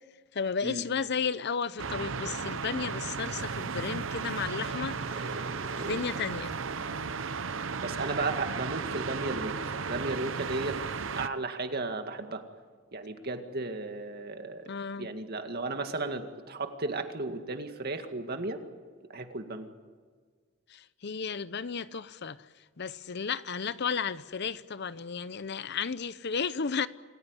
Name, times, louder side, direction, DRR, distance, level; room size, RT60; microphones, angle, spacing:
voice 1, 0.3-5.4 5.8-6.6 14.7-15.1 20.7-22.4 22.8-26.9, left 6 dB, 60° left, 0.7 m, -33 dB
sound 1, 1.8-11.3, right 5 dB, 70° right, 0.8 m, -35 dB
voice 2, 5.0-6.0 7.8-10.8 11.1-12.4 12.9-14.7 15.0-18.6 19.1-19.7, right 3 dB, 50° right, 2.1 m, -35 dB
27.0 x 15.5 x 9.7 m
head